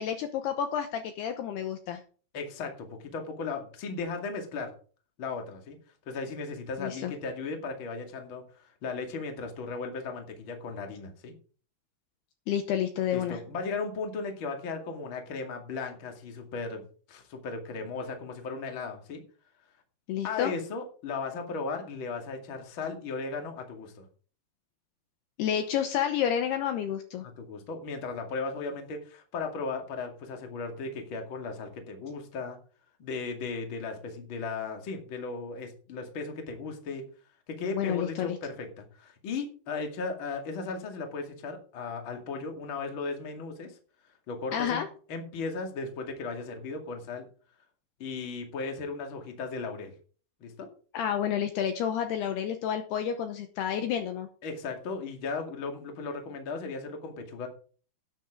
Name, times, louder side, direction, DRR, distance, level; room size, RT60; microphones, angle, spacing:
voice 1, 0.0-2.0 6.8-7.1 12.5-13.4 20.1-20.5 25.4-27.2 37.7-38.4 44.5-44.9 50.9-54.3, left 9 dB, 75° left, 7 dB, 2.7 m, -30 dB
voice 2, 2.3-4.7 5.2-5.8 6.1-8.4 8.8-11.3 13.1-19.2 20.2-24.1 27.2-32.6 33.0-37.0 37.5-43.8 44.3-44.8 45.1-47.3 48.0-49.9 50.4-50.7 54.4-57.5, left 4 dB, 40° left, 3 dB, 2.1 m, -36 dB
12.0 x 9.6 x 3.7 m, 0.40 s
omnidirectional pair, 5.3 m